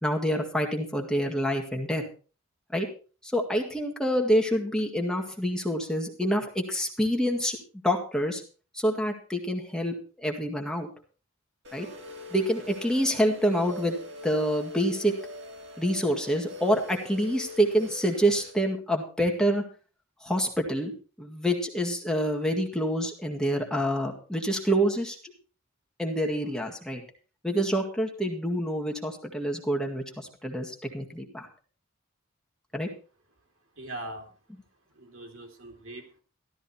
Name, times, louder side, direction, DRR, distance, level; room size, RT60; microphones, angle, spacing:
voice 1, 0.0-2.0 2.7-2.9 3.2-7.6 7.8-8.4 8.7-10.9 11.7-11.9 12.3-14.0 14.2-15.1 15.8-19.6 20.2-20.9 21.2-25.2 26.0-27.0 27.4-31.5 32.7-32.9, equal, 5° left, 0 dB, 1.9 m, -27 dB
sound 1, 11.6-18.5, left 2 dB, 60° right, 3.4 m, -43 dB
voice 2, 33.8-34.3 35.0-36.2, right 1 dB, 80° right, 4 dB, 2.8 m, -41 dB
13.5 x 13.0 x 4.3 m, 0.36 s
head